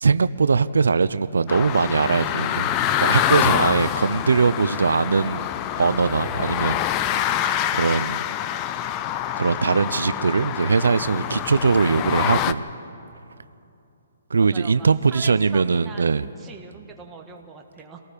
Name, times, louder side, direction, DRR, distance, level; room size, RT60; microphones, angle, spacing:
voice 1, 0.0-2.7 3.0-5.5 5.8-6.8 7.7-8.2 9.4-12.6 14.3-16.3, right 5 dB, 90° right, 14 dB, 0.5 m, -21 dB
sound 1, 1.5-12.5, left 11 dB, 25° left, 0.5 m, -26 dB
sound 2, 2.2-5.6 5.9-12.3, left 1 dB, 75° left, 4.7 m, -50 dB
voice 2, 14.4-18.0, right 5 dB, 10° right, 1 dB, 1.5 m, -42 dB
28.5 x 18.0 x 5.2 m, 2.7 s
hypercardioid pair, 155°, 0 cm